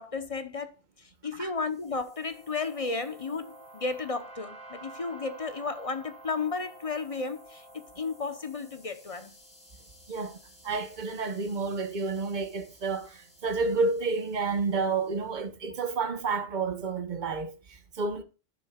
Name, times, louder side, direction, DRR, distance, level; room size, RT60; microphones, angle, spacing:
voice 1, 0.0-9.4, left 4 dB, 35° left, 0.9 m, -34 dB
sound 1, 1.7-15.0, right 1 dB, 5° left, 3.2 m, -52 dB
voice 2, 10.1-18.2, right 4 dB, 50° right, 1.2 m, -30 dB
11.5 x 6.4 x 2.4 m
omnidirectional pair, 1.0 m